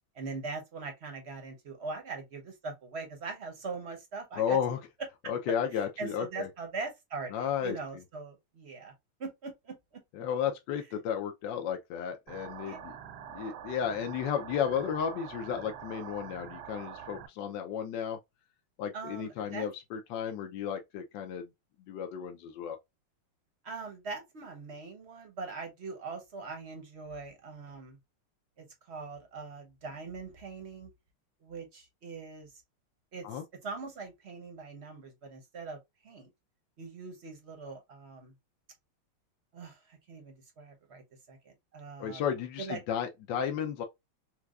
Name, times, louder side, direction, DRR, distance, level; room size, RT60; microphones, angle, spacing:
voice 1, 0.1-4.6 6.0-8.9 9.2-9.7 12.7-12.8 18.9-19.7 23.6-28.0 28.6-30.9 31.4-32.5 33.1-35.8 36.0-36.3 36.8-38.3 39.5-41.0 41.3-42.3 42.6-42.8, right 4 dB, 50° right, 0.8 m, -41 dB
voice 2, 4.3-4.8 5.3-6.5 7.3-7.8 10.1-13.0 13.3-18.2 18.8-21.5 21.9-22.8 33.2-33.4 42.0-43.8, left 8 dB, 70° left, 1.2 m, -33 dB
sound 1, 12.3-17.3, right 9 dB, 85° right, 0.8 m, -45 dB
4.6 x 2.2 x 2.3 m
omnidirectional pair, 2.3 m